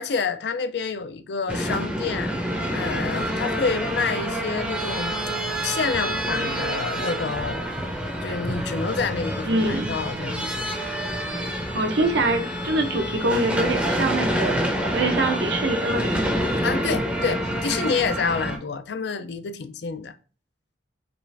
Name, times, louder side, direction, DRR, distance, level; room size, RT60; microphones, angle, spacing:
voice 1, 0.0-5.2 5.6-7.6 8.2-10.7 16.6-20.1, left 5 dB, 60° left, 0.4 m, -28 dB
sound 1, 1.5-18.6, equal, 5° right, 0.6 m, -27 dB
voice 2, 9.4-9.9 11.7-14.5 14.9-16.4, right 2 dB, 65° right, 0.7 m, -24 dB
5.1 x 2.4 x 3.3 m
head